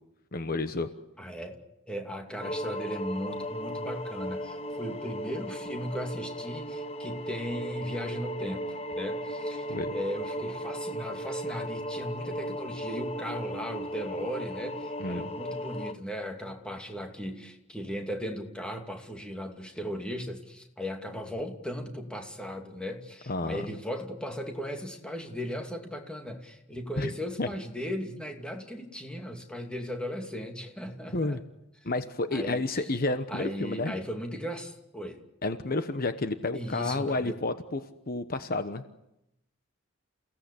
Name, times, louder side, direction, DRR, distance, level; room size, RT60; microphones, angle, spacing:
voice 1, 0.3-0.9 9.7-9.9 15.0-15.3 23.3-23.7 27.0-27.1 27.4-27.5 31.1-31.4 31.8-33.9 35.4-37.8 38.1-38.8, left 2 dB, 50° left, 9 dB, 1.1 m, -30 dB
voice 2, 1.2-1.6 1.9-31.4 32.3-32.6 33.3-35.2 36.5-37.4, equal, 5° left, 3 dB, 2.6 m, -37 dB
sound 1, 2.4-15.9, equal, 30° left, 1.1 m, -36 dB
29.5 x 17.0 x 8.5 m, 0.87 s
head